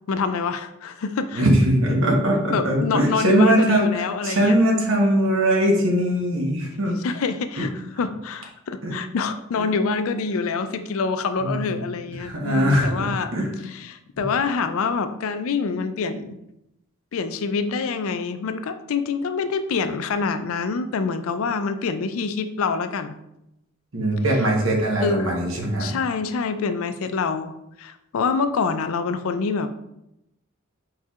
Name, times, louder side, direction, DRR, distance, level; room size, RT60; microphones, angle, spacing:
voice 1, 0.1-1.4 2.5-4.6 7.0-13.3 13.7-16.3 17.1-23.2 25.0-25.4 25.8-29.8, left 5 dB, 75° left, 10 dB, 0.4 m, -26 dB
voice 2, 1.3-7.0 7.6-7.7 8.8-9.0 9.6-9.7 11.4-11.8 12.2-13.5 23.9-25.9, right 1 dB, 65° right, 0 dB, 1.1 m, -21 dB
4.7 x 4.4 x 2.4 m, 0.84 s
head